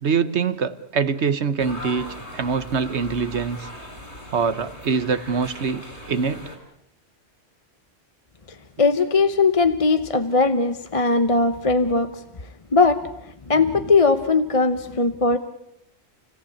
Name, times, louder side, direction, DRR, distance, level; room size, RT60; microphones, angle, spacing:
voice 1, 0.0-3.7 4.3-6.5, right 5 dB, 85° right, 13 dB, 1.5 m, -24 dB
sound 1, 1.6-6.6, left 1 dB, 90° left, 6.2 m, -39 dB
voice 2, 8.8-12.1 12.7-13.0 13.5-15.4, left 3 dB, 30° left, 10 dB, 1.0 m, -19 dB
29.5 x 17.5 x 8.6 m, 0.81 s
omnidirectional pair, 1.1 m